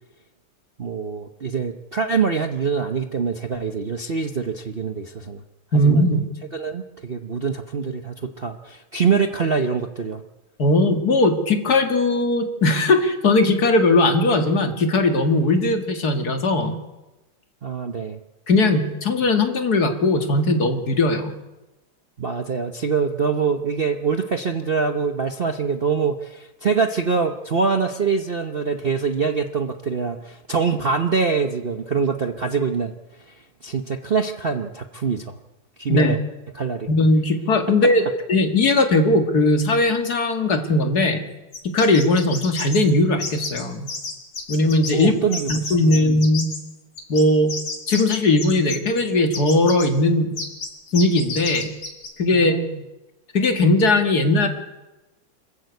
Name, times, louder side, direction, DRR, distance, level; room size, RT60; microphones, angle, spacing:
voice 1, 0.8-5.4 5.8-6.1 6.5-10.2 17.6-18.2 22.2-32.9 33.6-35.4 35.8-36.2 36.5-36.9 44.9-46.0 52.3-52.8, right 5 dB, 70° right, 6 dB, 0.5 m, -24 dB
voice 2, 5.7-6.3 10.6-16.8 18.5-21.3 35.9-36.2 36.9-38.0 38.3-41.2 41.7-43.9 44.5-45.1 45.5-46.4 47.1-47.5 47.9-50.4 50.9-51.7 52.2-52.6 53.3-54.5, left 2 dB, 45° left, 6 dB, 2.5 m, -19 dB
sound 1, 41.5-42.8 43.2-43.6 43.9-45.1 45.3-46.6 47.0-49.0 49.3-49.9 50.4-50.7 50.9-52.1, left 3 dB, 65° left, 4.1 m, -31 dB
26.0 x 14.5 x 8.3 m, 1.0 s
omnidirectional pair, 2.4 m